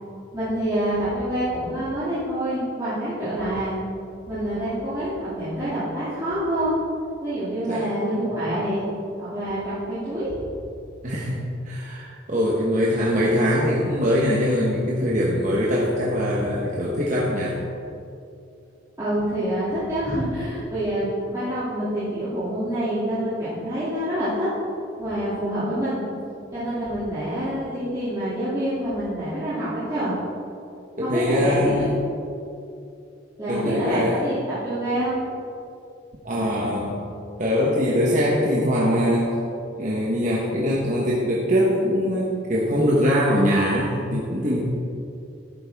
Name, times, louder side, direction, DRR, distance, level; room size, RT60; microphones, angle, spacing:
voice 1, 0.3-3.8 4.3-6.8 7.2-8.8 9.2-10.4 19.0-24.5 25.0-26.0 26.5-30.2 31.0-31.9 33.4-35.2, right 1 dB, 20° right, -14 dB, 2.5 m, -26 dB
voice 2, 7.7-8.0 8.3-8.5 11.0-11.4 11.6-17.5 31.0-31.9 33.5-34.1 36.2-36.9 37.4-39.3 39.8-44.6, equal, 40° right, -5 dB, 1.1 m, -22 dB
11.5 x 8.6 x 3.5 m, 2.5 s
head